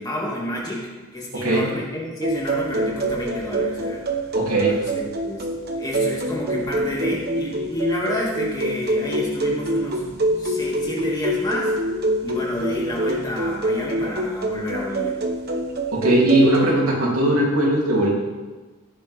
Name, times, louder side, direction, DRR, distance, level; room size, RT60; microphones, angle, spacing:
voice 1, 0.0-4.2 4.7-5.5 5.7-10.1 10.4-11.7 12.2-15.1, left 1 dB, 15° left, -4 dB, 2.4 m, -29 dB
voice 2, 1.3-1.6 4.3-4.8 15.9-18.1, right 1 dB, 90° right, -4 dB, 3.4 m, -19 dB
sound 1, 2.2-16.7, right 1 dB, 45° right, 1.2 m, -26 dB
16.0 x 9.6 x 3.6 m, 1.3 s
head